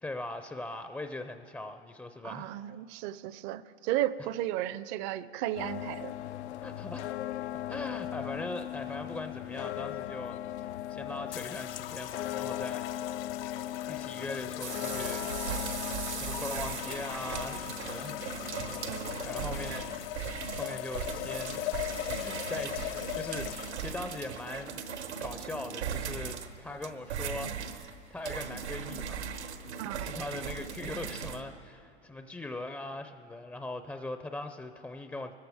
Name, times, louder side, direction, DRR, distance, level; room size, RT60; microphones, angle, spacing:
voice 1, 0.0-2.5 6.6-7.1 7.7-12.9 13.9-15.8 16.1-18.3 18.8-20.0 20.5-21.7 22.2-24.8 25.2-29.4 30.0-35.3, left 2 dB, 5° left, 7 dB, 0.5 m, -41 dB
voice 2, 2.2-6.1 18.9-19.1 29.8-30.1, right 13 dB, 45° right, 16 dB, 0.6 m, -34 dB
sound 1, 5.6-20.1, left 13 dB, 80° left, 0.5 m, -39 dB
sound 2, 11.3-25.6, left 13 dB, 60° left, 0.8 m, -40 dB
sound 3, 14.6-31.4, right 7 dB, 80° right, 1.2 m, -38 dB
25.5 x 14.5 x 3.6 m, 2.5 s
hypercardioid pair, 100°, 33 cm